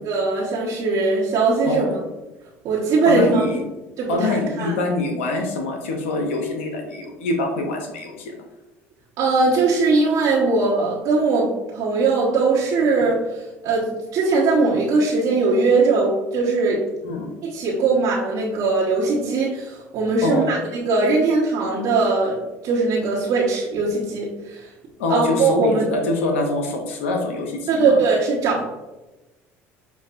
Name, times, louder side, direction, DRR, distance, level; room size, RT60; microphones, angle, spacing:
voice 1, 0.0-1.9 2.6-3.4 4.0-4.8 9.2-16.8 17.5-24.7 25.1-25.8 27.7-28.6, right 3 dB, 60° right, -7 dB, 1.2 m, -20 dB
voice 2, 1.6-1.9 3.1-3.6 4.1-8.3 13.0-13.1 17.0-17.3 20.2-20.6 25.0-28.0, left 2 dB, 85° left, 3 dB, 0.6 m, -24 dB
6.9 x 2.5 x 2.5 m, 1.1 s
hypercardioid pair, 70°, 7 cm